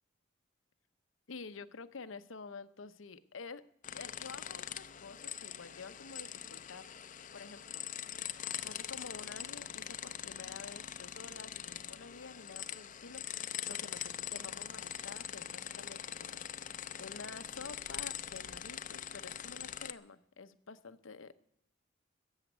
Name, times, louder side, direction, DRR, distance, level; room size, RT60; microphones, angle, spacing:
voice 1, 1.3-3.6 3.9-6.8 7.3-7.9 8.6-16.6 17.0-21.3, left 4 dB, 85° left, 13 dB, 0.8 m, -49 dB
sound 1, 3.8-19.9, left 10 dB, 40° left, 0.5 m, -43 dB
14.0 x 7.2 x 9.1 m, 0.76 s
head